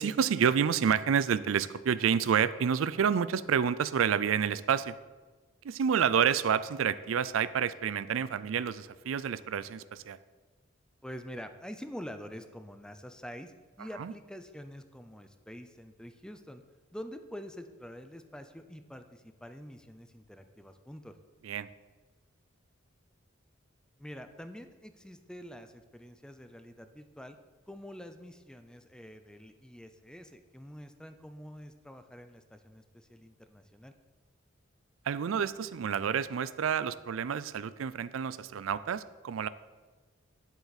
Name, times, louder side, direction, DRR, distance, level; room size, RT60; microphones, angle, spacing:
voice 1, 0.0-5.0 5.6-10.2 14.0-14.1 21.4-21.7 35.1-39.5, right 7 dB, 85° right, 15 dB, 0.4 m, -29 dB
voice 2, 11.0-16.6 16.9-21.2 24.0-27.4 27.7-33.9, equal, 5° left, 8 dB, 0.5 m, -46 dB
9.7 x 8.0 x 4.1 m, 1.3 s
head